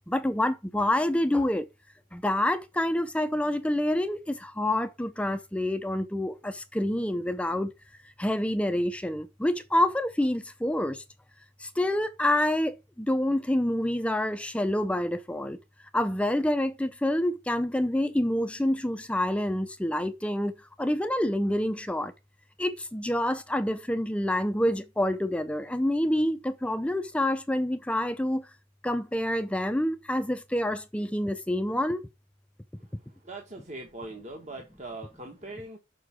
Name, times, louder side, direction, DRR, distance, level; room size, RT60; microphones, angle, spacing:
voice 1, 0.1-1.7 2.1-7.7 8.2-11.0 11.6-15.6 15.9-22.1 22.6-28.5 28.8-32.0, left 1 dB, 5° left, 0.5 m, -27 dB
voice 2, 33.2-35.8, right 2 dB, 40° right, 1.2 m, -41 dB
6.6 x 4.6 x 6.0 m
head